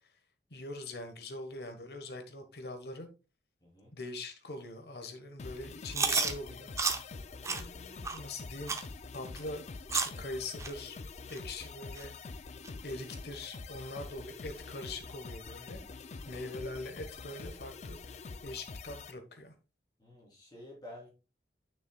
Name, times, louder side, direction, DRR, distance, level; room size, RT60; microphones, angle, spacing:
voice 1, 0.5-3.1 3.9-6.7 7.5-8.8 9.1-9.6 9.9-11.0 11.3-12.3 12.8-15.8 16.3-19.5, left 2 dB, 65° left, 1.3 m, -43 dB
sound 1, 5.4-19.1, left 4 dB, 40° left, 0.4 m, -46 dB
Chewing mastication, 5.9-6.3 6.8-7.0 7.4-7.6 8.0-8.2 8.7-8.9 9.4-9.5 9.9-10.2 10.6-10.7 11.3-11.4 12.0-12.1 12.6-12.7, right 4 dB, 15° right, 0.7 m, -30 dB
voice 2, 20.0-21.1, left 1 dB, 25° left, 3.7 m, -50 dB
9.8 x 6.2 x 2.3 m
head